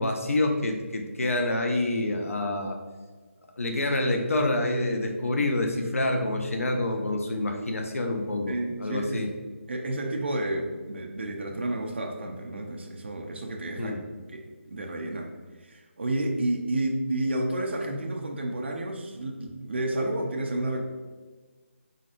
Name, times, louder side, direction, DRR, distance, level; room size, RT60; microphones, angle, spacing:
voice 1, 0.0-2.8 3.6-9.3 13.8-14.0, left 2 dB, 85° left, 3 dB, 0.7 m, -27 dB
voice 2, 8.5-9.2 9.7-14.0 14.3-15.3 15.6-20.8, right 1 dB, 55° right, 1 dB, 0.6 m, -31 dB
4.2 x 4.0 x 2.5 m, 1.4 s
figure-of-eight pair, 175°, 7 cm